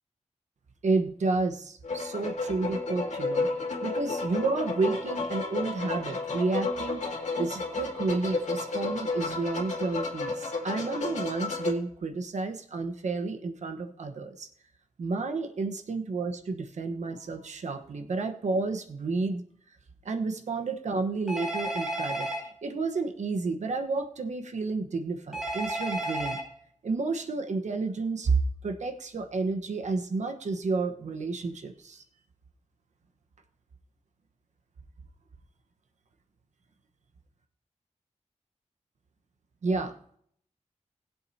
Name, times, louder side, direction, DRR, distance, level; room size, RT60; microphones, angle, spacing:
voice 1, 0.8-3.5 3.8-7.0 7.4-14.5 15.0-19.4 20.0-22.3 22.6-26.4 26.8-32.0 39.6-39.9, right 3 dB, 80° right, 5 dB, 1.2 m, -31 dB
sound 1, 1.8-11.7, left 3 dB, 85° left, 2.2 m, -32 dB
Telephone, 21.3-22.4 25.3-26.4, right 1 dB, ahead, 4.5 m, -32 dB
20.5 x 7.7 x 2.8 m, 0.64 s
wide cardioid pair, 135°, 12 cm